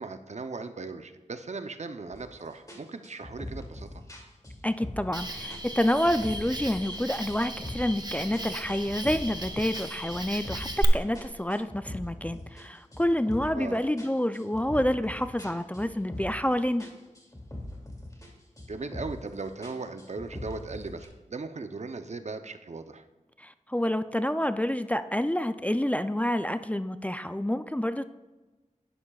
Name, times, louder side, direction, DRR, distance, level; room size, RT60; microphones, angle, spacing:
voice 1, 0.0-4.0 13.5-13.9 18.7-23.1, right 3 dB, 60° right, 9 dB, 0.7 m, -38 dB
sound 1, 2.1-2.3 2.7-5.2 5.5-7.0 7.3-8.0 8.3-10.8 11.2-13.6 14.0-16.5 16.8-18.3 18.6-19.3 19.6-21.1, left 1 dB, 25° left, 2.6 m, -41 dB
voice 2, 4.6-16.9 23.4-28.1, left 1 dB, 10° left, 11 dB, 0.4 m, -28 dB
Cricket, 5.1-10.8, right 1 dB, 30° right, 1.1 m, -36 dB
11.0 x 10.0 x 2.4 m, 1.2 s
cardioid pair, 40°, 13 cm